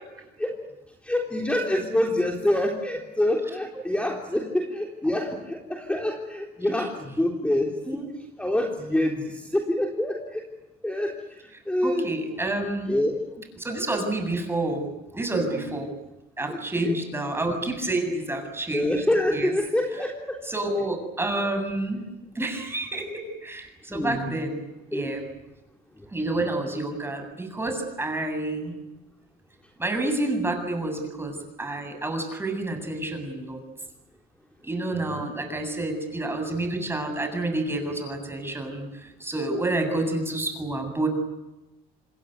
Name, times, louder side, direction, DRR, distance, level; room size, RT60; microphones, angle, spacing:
voice 1, 1.0-8.0 8.4-10.4 10.8-11.1 11.7-12.1 12.9-13.2 15.5-15.7 16.5-17.0 18.7-20.4 23.9-24.3 24.9-25.1 34.9-35.2, left 1 dB, 5° left, 1 dB, 3.7 m, -26 dB
voice 2, 11.8-13.0 13.6-14.9 15.1-15.9 16.4-18.9 19.3-19.5 20.5-22.0 22.3-24.6 24.9-25.2 26.1-28.8 29.8-33.6 34.6-41.1, right 2 dB, 15° right, 5 dB, 7.8 m, -29 dB
27.5 x 21.0 x 9.6 m, 1.0 s
cardioid pair, 110°, 17 cm